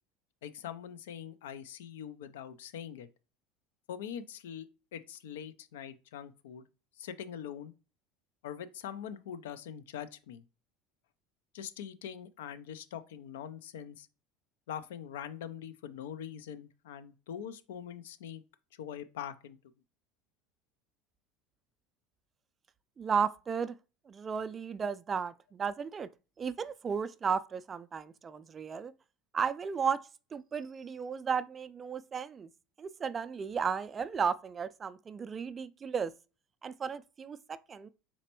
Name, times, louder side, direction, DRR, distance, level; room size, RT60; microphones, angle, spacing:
voice 1, 0.4-3.1 3.9-4.7 4.9-6.7 7.0-7.7 8.4-10.4 11.5-14.1 14.7-18.4 18.8-19.6, left 9 dB, 75° left, 0.4 m, -43 dB
voice 2, 23.0-23.8 24.1-26.1 26.4-28.9 29.3-30.0 30.3-32.5 32.8-36.1 36.6-37.9, right 6 dB, 30° right, 0.3 m, -34 dB
4.1 x 3.3 x 2.9 m
hypercardioid pair, 75°, 0 cm